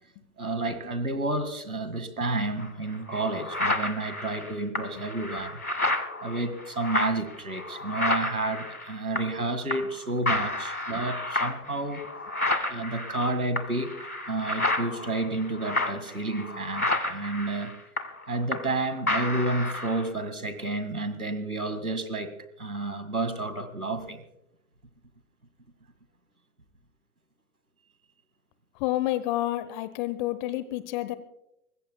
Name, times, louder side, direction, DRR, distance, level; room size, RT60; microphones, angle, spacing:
voice 1, 0.4-5.6 6.2-12.0 12.7-17.7 18.3-24.2, right 2 dB, 85° right, 11 dB, 2.1 m, -30 dB
sound 1, 2.6-2.7 3.1-9.4 9.7-10.0 10.3-18.8 19.1-20.1, left 2 dB, 90° left, 1.5 m, -31 dB
voice 2, 28.8-31.1, left 15 dB, 35° left, 14 dB, 0.9 m, -29 dB
24.5 x 21.0 x 2.3 m, 0.82 s
figure-of-eight pair, 105°, 42 cm